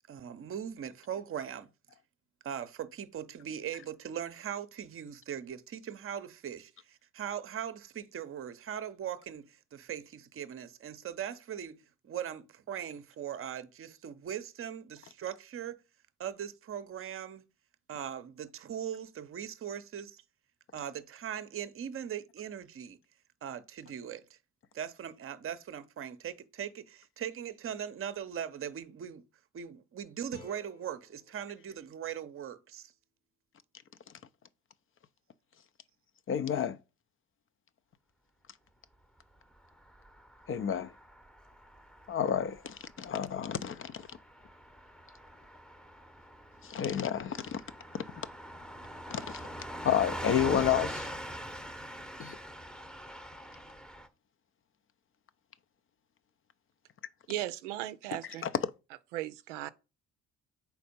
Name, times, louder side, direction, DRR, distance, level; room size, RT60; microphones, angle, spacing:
voice 1, 0.1-1.7 2.4-11.8 12.0-15.8 16.2-17.4 17.9-20.2 20.7-23.0 23.4-24.4 24.7-29.2 29.5-32.9, right 9 dB, 40° right, 0.7 m, -40 dB
sound 1, 30.3-33.4, left 3 dB, 75° left, 2.2 m, -57 dB
voice 2, 36.3-36.8 40.5-40.9 42.1-44.1 46.6-47.6 47.9-48.0 49.1-49.4 49.8-51.1 52.2-52.4 58.4-58.5, left 9 dB, 35° left, 0.5 m, -30 dB
Car passing by / Truck, 39.7-54.1, equal, ahead, 0.8 m, -43 dB
voice 3, 57.3-58.4 59.1-59.7, right 14 dB, 90° right, 0.5 m, -36 dB
4.6 x 4.2 x 5.3 m
hypercardioid pair, 55°, 35 cm